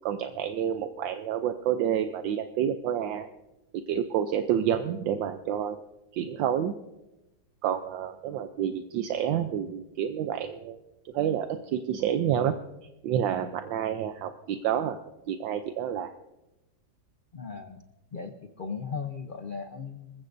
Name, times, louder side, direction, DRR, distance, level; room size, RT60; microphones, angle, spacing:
voice 1, 0.0-3.3 3.7-5.8 6.1-6.7 7.6-10.8 11.1-12.5 13.0-15.0 15.3-16.1, right 9 dB, 80° right, 8 dB, 1.3 m, -29 dB
voice 2, 17.3-17.8 18.1-20.2, left 5 dB, 70° left, 6 dB, 0.4 m, -37 dB
26.5 x 15.0 x 2.6 m, 0.99 s
omnidirectional pair, 2.1 m